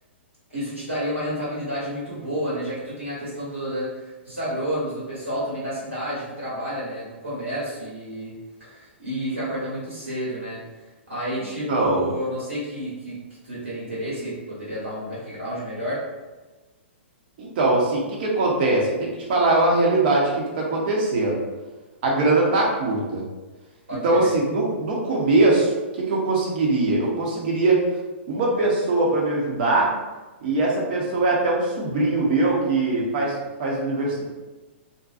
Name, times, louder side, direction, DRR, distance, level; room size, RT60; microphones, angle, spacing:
voice 1, 0.5-8.3 8.6-10.6 11.1-13.2 13.4-16.0 23.9-24.3, equal, 85° right, -9 dB, 1.4 m, -30 dB
voice 2, 11.7-12.0 17.4-21.4 22.0-23.2 24.0-27.9 28.3-29.9 30.4-34.2, right 2 dB, 50° right, -3 dB, 0.8 m, -21 dB
2.5 x 2.2 x 2.5 m, 1.2 s
figure-of-eight pair, 115°, 7 cm